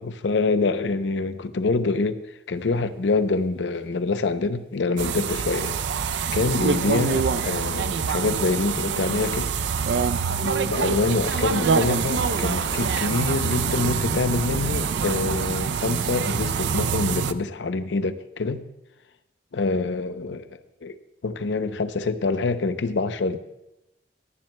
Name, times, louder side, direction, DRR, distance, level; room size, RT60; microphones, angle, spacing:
voice 1, 0.0-2.2 2.5-5.8 6.3-9.5 10.4-18.6 19.5-21.0 21.2-23.4, left 3 dB, 90° left, 0.6 m, -25 dB
sound 1, 5.0-17.3, right 5 dB, 75° right, 0.5 m, -25 dB
sound 2, 11.2-17.2, right 1 dB, 30° right, 0.9 m, -41 dB
23.5 x 10.5 x 2.2 m
head